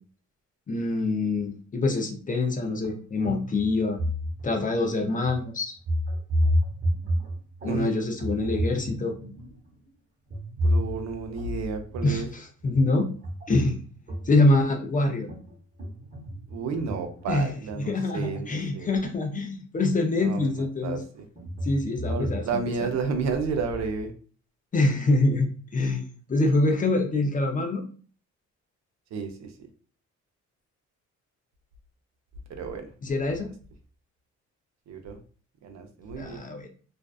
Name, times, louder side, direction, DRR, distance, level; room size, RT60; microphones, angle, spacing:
voice 1, 0.7-4.0 4.4-5.8 7.6-9.1 12.0-13.1 13.5-13.8 14.3-15.3 17.3-17.5 17.9-21.0 21.6-22.9 24.7-25.5 25.7-26.0 26.3-27.8 33.0-33.5 36.2-36.7, left 2 dB, 25° left, 4 dB, 0.5 m, -25 dB
sound 1, 2.8-3.0 3.2-4.8 5.2-5.4 5.8-7.9 8.2-9.7 10.3-11.4 11.9-12.3 12.6-14.7 15.3-17.9 18.7-18.8 19.3-19.4 20.8-22.5, equal, 35° right, 1.0 m, -30 dB
voice 2, 10.6-12.3 16.5-19.0 20.2-21.3 22.1-24.1 29.1-29.5 32.5-32.9 34.9-35.2 35.6-36.4, right 5 dB, 65° right, 6 dB, 0.5 m, -31 dB
2.5 x 2.2 x 2.3 m, 0.42 s
cardioid pair, 90°, 30 cm